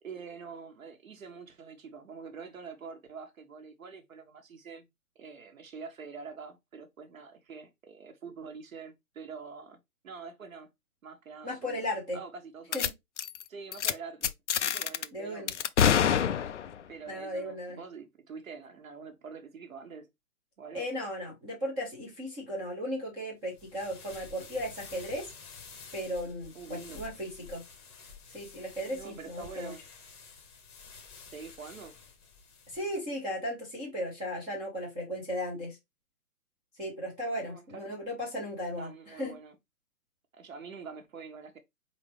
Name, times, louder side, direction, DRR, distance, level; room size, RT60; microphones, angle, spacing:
voice 1, 0.0-4.9 5.1-10.7 11.0-11.8 12.1-12.9 13.5-14.3 14.6-15.7 16.9-20.1 20.6-20.9 26.5-27.0 28.9-29.8 31.3-32.0 37.4-37.9 38.7-39.6 40.3-41.6, right 5 dB, 60° right, 1.3 m, -45 dB
voice 2, 11.4-12.2 12.7-12.9 15.1-15.5 17.1-17.8 20.7-25.3 25.9-27.6 28.3-29.7 32.7-35.8 36.8-38.9 39.2-39.4, equal, 5° right, 0.6 m, -36 dB
sound 1, 12.7-12.9 13.2-13.4 13.7-13.9 14.2-15.0 15.5-16.8, left 8 dB, 50° left, 0.5 m, -26 dB
sound 2, 23.5-33.0, left 5 dB, 20° left, 0.9 m, -50 dB
4.5 x 3.8 x 3.1 m
figure-of-eight pair, 135°, 46 cm